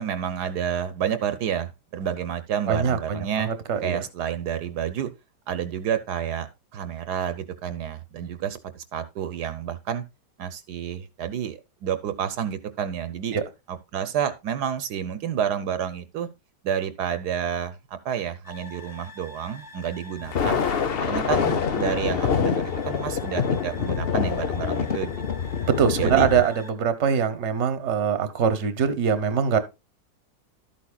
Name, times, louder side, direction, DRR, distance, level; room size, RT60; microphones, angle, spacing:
voice 1, 0.0-3.5 3.8-5.1 5.5-6.5 6.7-10.0 10.4-13.4 13.7-16.3 16.6-20.6 21.0-25.4 26.0-26.3, right 9 dB, 75° right, 1.3 m, -29 dB
voice 2, 2.7-4.0 13.3-13.4 25.6-29.6, right 7 dB, 45° right, 1.3 m, -23 dB
sound 1, 18.4-26.7, left 2 dB, ahead, 1.5 m, -45 dB
Thunder, 20.2-26.4, left 7 dB, 45° left, 0.9 m, -25 dB
12.5 x 8.5 x 2.3 m
omnidirectional pair, 1.7 m